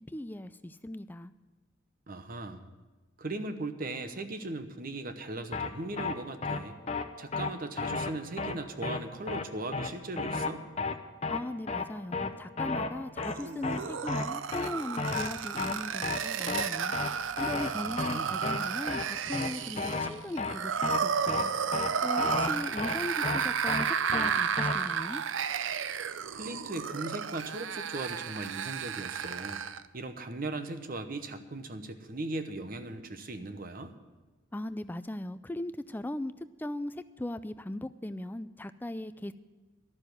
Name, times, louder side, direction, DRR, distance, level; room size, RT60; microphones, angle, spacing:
voice 1, 0.1-1.3 11.3-17.0 17.4-21.5 22.0-25.2 34.5-39.3, left 1 dB, 10° left, 13 dB, 0.3 m, -38 dB
voice 2, 2.1-2.7 3.2-6.8 7.2-10.6 17.7-18.4 26.3-29.6 29.9-33.9, right 2 dB, 45° right, 9 dB, 0.9 m, -38 dB
sound 1, 5.5-5.7 6.0-6.1 6.4-6.6 6.9-7.0 7.3-7.5 7.8-8.1 8.4-8.5 8.8-9.0 9.3-9.4 9.7-9.9 10.2-10.5 10.8-10.9 11.2-11.4 11.7-11.9 12.1-12.3 12.6-12.9 13.2-13.4 13.6-13.8 14.1-14.3 14.5-14.7 15.0-15.3 15.6-15.8 16.0-16.2 16.5-16.6 16.9-17.1 17.4-17.7 18.0-18.1 18.4-18.6 18.9-19.0 19.3-19.5 19.8-20.1 20.4-20.6 20.8-21.0 21.3-21.4 21.7-21.9 22.2-22.5 22.8-22.9 23.2-23.4 23.7-23.9 24.1-24.3 24.6-24.7, left 3 dB, 30° left, 0.7 m, -32 dB
sound 2, 13.2-29.9, right 7 dB, 70° right, 0.5 m, -32 dB
12.0 x 6.9 x 9.5 m, 1.2 s
head